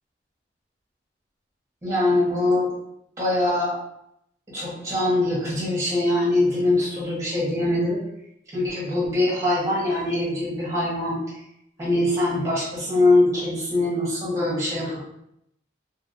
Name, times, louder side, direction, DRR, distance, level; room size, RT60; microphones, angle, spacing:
voice 1, 1.8-2.7 3.2-3.8 4.5-8.0 8.5-11.2 11.8-15.0, left 2 dB, 15° right, -6 dB, 1.1 m, -23 dB
2.8 x 2.7 x 2.6 m, 0.76 s
head